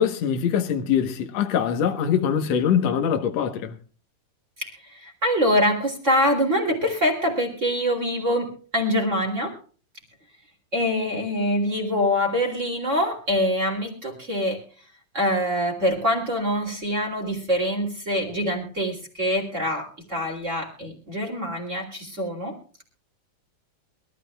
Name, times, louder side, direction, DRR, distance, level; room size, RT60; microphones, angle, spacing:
voice 1, 0.0-3.8, left 8 dB, 90° left, 1.4 m, -23 dB
voice 2, 4.6-9.6 10.7-14.8 15.1-22.6, equal, 20° right, 2.4 m, -25 dB
23.5 x 13.5 x 2.3 m
omnidirectional pair, 4.9 m